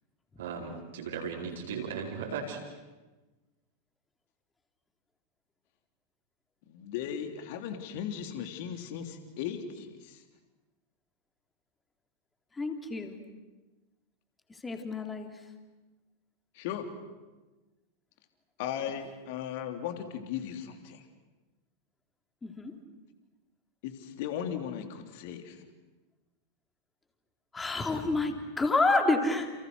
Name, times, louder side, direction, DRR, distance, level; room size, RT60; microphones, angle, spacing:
voice 1, 0.4-2.6, right 6 dB, 60° right, -3 dB, 4.7 m, -36 dB
voice 2, 6.7-10.2 16.5-16.9 18.6-21.0 23.8-25.6, left 9 dB, 50° left, 6 dB, 3.3 m, -37 dB
voice 3, 12.5-13.2 14.6-15.3 22.4-22.7 27.5-29.5, left 3 dB, 15° left, 5 dB, 3.4 m, -28 dB
30.0 x 30.0 x 6.4 m, 1.2 s
figure-of-eight pair, 90°, 0 cm